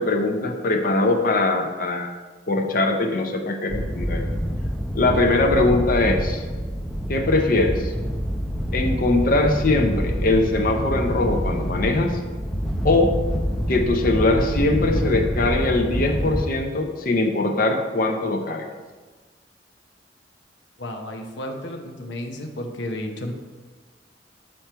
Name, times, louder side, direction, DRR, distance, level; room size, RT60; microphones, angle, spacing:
voice 1, 0.0-2.1 2.5-4.2 4.9-6.4 7.1-7.9 8.7-12.1 12.8-13.1 13.7-18.7, left 2 dB, 55° left, 4 dB, 0.6 m, -21 dB
sound 1, 3.7-16.5, equal, ahead, 0.5 m, -26 dB
voice 2, 20.8-23.3, left 1 dB, 85° left, 3 dB, 0.8 m, -32 dB
6.4 x 4.4 x 4.5 m, 1.4 s
head